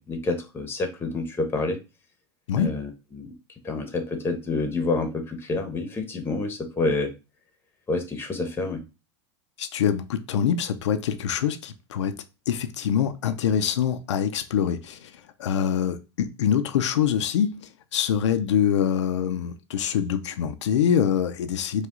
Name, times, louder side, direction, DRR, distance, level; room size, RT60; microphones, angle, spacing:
voice 1, 0.0-1.8 2.5-3.3 3.6-7.1 7.9-8.8, left 3 dB, 15° left, 6 dB, 1.0 m, -28 dB
voice 2, 9.6-12.2 12.5-21.9, left 8 dB, 90° left, 8 dB, 0.5 m, -25 dB
4.8 x 2.4 x 3.7 m, 0.28 s
supercardioid pair, 125°, 15 cm